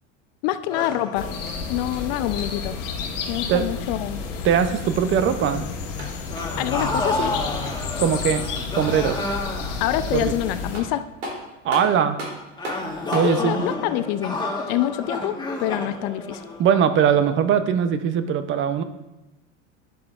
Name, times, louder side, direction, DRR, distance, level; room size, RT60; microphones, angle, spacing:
voice 1, 0.4-1.3 1.7-2.8 3.3-4.2 6.6-7.3 9.8-11.1 13.2-14.4 14.7-16.4, left 13 dB, 55° left, 12 dB, 0.5 m, -26 dB
sound 1, 0.7-3.8 4.2-4.5 6.3-10.9 12.6-17.1, left 2 dB, 10° left, 1.3 m, -31 dB
sound 2, 1.1-10.8, left 5 dB, 75° left, 1.3 m, -31 dB
sound 3, 1.4-2.7 5.7-8.0 10.3-10.4 10.7-13.4, right 1 dB, 80° right, 2.9 m, -37 dB
voice 2, 4.4-5.6 8.0-8.4 8.8-9.2 10.1-10.3 11.6-12.2 13.1-13.7 16.6-18.8, right 8 dB, 35° right, 11 dB, 0.5 m, -20 dB
10.5 x 7.3 x 2.4 m, 1.0 s
hypercardioid pair, 95°, 37 cm